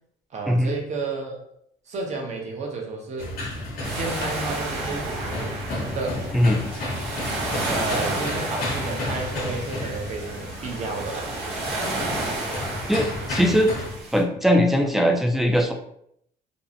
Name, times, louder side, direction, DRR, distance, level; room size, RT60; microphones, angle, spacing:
voice 1, 0.3-1.4 1.9-3.3 3.9-5.6 5.9-6.3 7.7-11.4, right 3 dB, 45° right, 1 dB, 0.7 m, -31 dB
sound 1, 3.2-13.9, left 1 dB, 60° left, 0.8 m, -33 dB
sound 2, 3.8-14.2, right 2 dB, 85° right, 0.9 m, -31 dB
voice 2, 12.9-13.7 14.1-15.7, equal, ahead, 2 dB, 0.3 m, -20 dB
2.6 x 2.0 x 2.6 m, 0.71 s
cardioid pair, 110°, 17 cm